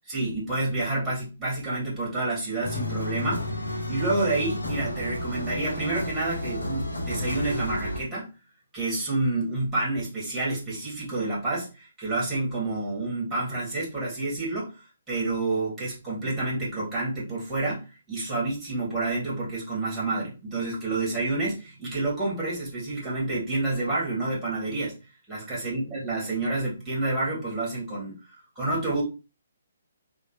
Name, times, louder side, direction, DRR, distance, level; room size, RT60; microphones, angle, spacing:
voice 1, 0.1-3.5 3.7-8.3 8.7-14.7 15.1-25.0 25.3-28.2 28.5-29.0, right 2 dB, 10° right, -6 dB, 1.6 m, -29 dB
sound 1, 2.6-8.0, left 1 dB, 75° left, 0.7 m, -32 dB
3.0 x 2.3 x 2.9 m, 0.31 s
figure-of-eight pair, 130°, 0 cm